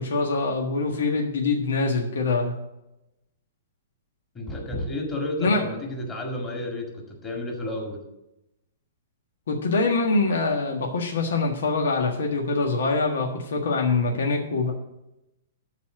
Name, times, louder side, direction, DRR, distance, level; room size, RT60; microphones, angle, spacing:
voice 1, 0.0-2.5 5.4-5.6 9.5-14.7, left 3 dB, 85° left, 1 dB, 1.6 m, -24 dB
voice 2, 4.3-8.0, left 1 dB, 15° left, 0 dB, 1.9 m, -31 dB
12.5 x 4.2 x 7.6 m, 0.91 s
hypercardioid pair, 170°, 0 cm